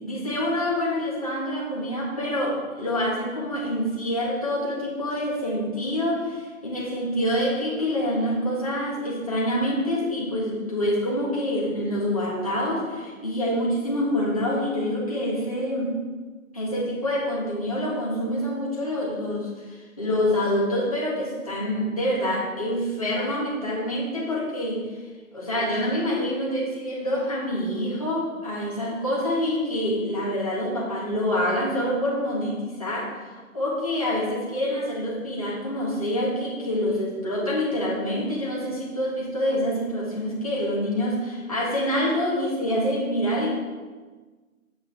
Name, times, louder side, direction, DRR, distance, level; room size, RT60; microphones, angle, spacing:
voice 1, 0.0-16.0 16.5-24.9 25.3-33.2 33.5-43.6, equal, 25° left, -5 dB, 1.6 m, -26 dB
8.8 x 8.2 x 3.4 m, 1.4 s
figure-of-eight pair, 175°, 42 cm